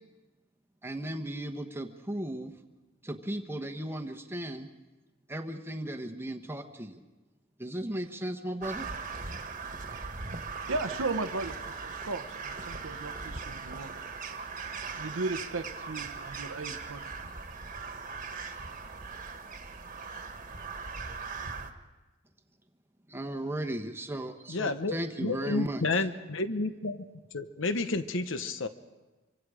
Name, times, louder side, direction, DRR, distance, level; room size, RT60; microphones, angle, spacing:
voice 1, 0.8-2.5 3.0-4.7 5.3-7.0 7.6-8.9 23.1-26.1, right 1 dB, 10° right, 4 dB, 1.1 m, -36 dB
Crow, 8.6-21.7, right 4 dB, 40° right, 1.5 m, -39 dB
voice 2, 10.7-13.9 15.0-17.1, right 3 dB, 85° right, 6 dB, 0.9 m, -36 dB
voice 3, 24.5-27.0 27.3-28.7, left 3 dB, 65° left, 10 dB, 1.0 m, -31 dB
25.5 x 25.0 x 5.0 m, 1.2 s
head